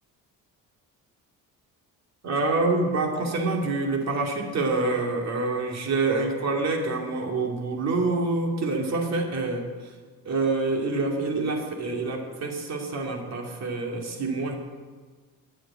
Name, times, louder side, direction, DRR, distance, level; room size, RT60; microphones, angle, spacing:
voice 1, 2.2-9.6 10.2-14.5, right 3 dB, 50° right, 1 dB, 2.5 m, -26 dB
10.0 x 7.7 x 9.7 m, 1.4 s
cardioid pair, 120°, 34 cm